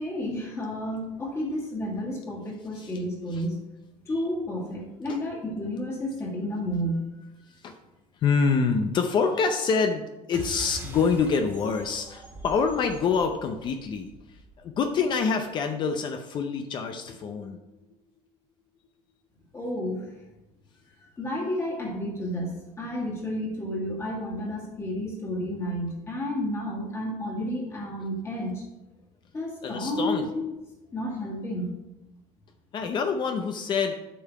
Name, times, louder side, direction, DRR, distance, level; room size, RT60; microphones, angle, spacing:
voice 1, 0.0-3.6 4.1-7.1 19.5-20.0 21.2-22.5 22.8-28.6 29.3-30.5 30.9-31.7, left 1 dB, 20° left, -3 dB, 1.8 m, -31 dB
voice 2, 2.7-3.0 3.3-3.4 4.1-4.2 5.1-5.2 7.6-7.8 8.2-17.6 29.6-30.3 32.7-33.9, left 5 dB, 40° left, 6 dB, 0.6 m, -26 dB
sound 1, 10.3-15.2, right 2 dB, 15° right, 1.8 m, -43 dB
8.5 x 5.5 x 4.6 m, 0.98 s
cardioid pair, 160°, 12 cm